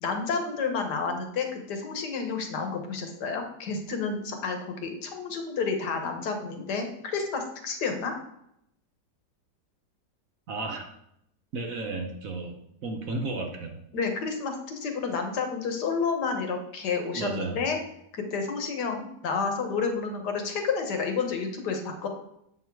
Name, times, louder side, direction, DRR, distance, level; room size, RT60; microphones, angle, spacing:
voice 1, 0.0-8.1 13.9-17.8 18.1-22.1, left 5 dB, 65° left, 4 dB, 1.7 m, -30 dB
voice 2, 10.5-10.9 11.5-12.6 12.8-13.8 17.1-17.6, right 3 dB, 55° right, 3 dB, 1.1 m, -33 dB
7.9 x 6.1 x 4.6 m, 0.77 s
omnidirectional pair, 2.0 m